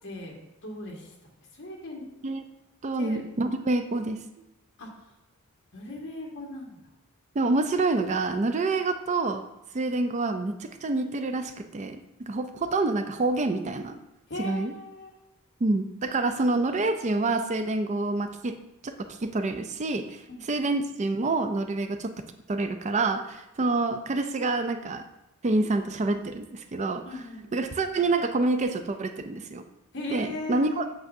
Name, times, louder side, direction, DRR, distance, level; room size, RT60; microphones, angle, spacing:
voice 1, 0.0-1.1 1.5-2.1 3.0-3.2 4.8-5.0 5.7-6.8 14.3-15.2 20.3-20.6 27.0-27.6 29.9-30.9, left 1 dB, 55° left, -1 dB, 1.7 m, -38 dB
voice 2, 2.8-4.2 7.4-9.4 9.7-12.0 12.3-14.0 14.4-14.7 15.6-18.6 18.8-22.1 22.5-25.0 25.4-27.2 27.5-29.6 30.1-30.9, right 2 dB, 35° right, 8 dB, 0.4 m, -27 dB
8.1 x 6.3 x 2.6 m, 0.96 s
head